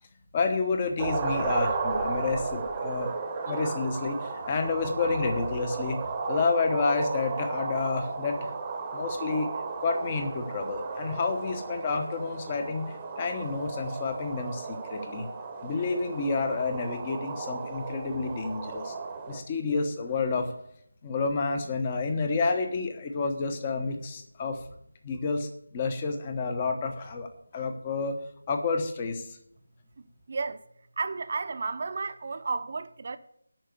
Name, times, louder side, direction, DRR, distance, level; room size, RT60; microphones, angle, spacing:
voice 1, 0.3-3.1 3.4-6.0 6.3-8.5 8.9-9.5 9.8-15.3 15.6-18.9 19.3-20.5 21.0-24.6 25.0-28.2 28.5-29.4, left 4 dB, 20° left, 1.0 m, -29 dB
sound 1, 1.0-19.4, right 4 dB, 15° right, 1.0 m, -34 dB
voice 2, 30.3-30.6 31.0-33.2, right 4 dB, 40° right, 0.7 m, -32 dB
8.8 x 5.8 x 7.9 m
figure-of-eight pair, 170°, 0 cm